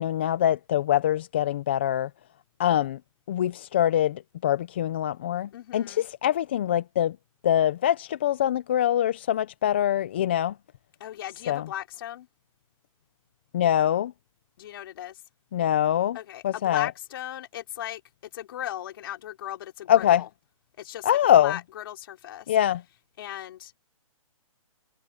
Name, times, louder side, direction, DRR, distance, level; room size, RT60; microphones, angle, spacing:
voice 1, 0.0-2.1 2.6-3.0 3.3-7.2 7.4-10.5 11.5-11.6 13.5-14.1 15.5-16.2 16.4-16.9 19.9-20.2 21.0-21.5 22.5-22.8, left 11 dB, 20° left, 0.3 m, -24 dB
voice 2, 5.5-6.1 11.0-12.3 14.6-15.2 16.1-18.0 18.3-20.3 20.8-21.1 21.4-22.5 23.2-23.8, left 12 dB, 40° left, 4.4 m, -37 dB
hypercardioid pair, 165°, 18 cm